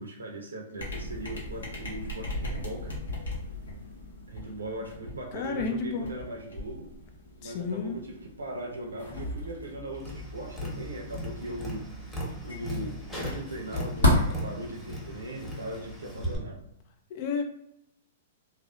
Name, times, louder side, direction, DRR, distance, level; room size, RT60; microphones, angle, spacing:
voice 1, 0.0-3.0 4.3-6.9 7.4-11.9 12.4-16.6, right 1 dB, 90° right, 0 dB, 0.7 m, -39 dB
sound 1, 0.8-15.5, left 1 dB, 80° left, 0.8 m, -34 dB
voice 2, 5.3-6.1 7.4-8.0 17.1-17.4, left 5 dB, 50° left, 5 dB, 0.4 m, -31 dB
Tap, 10.0-16.4, left 1 dB, 5° left, 0.9 m, -38 dB
2.6 x 2.0 x 2.3 m, 0.76 s
hypercardioid pair, 115°, 0 cm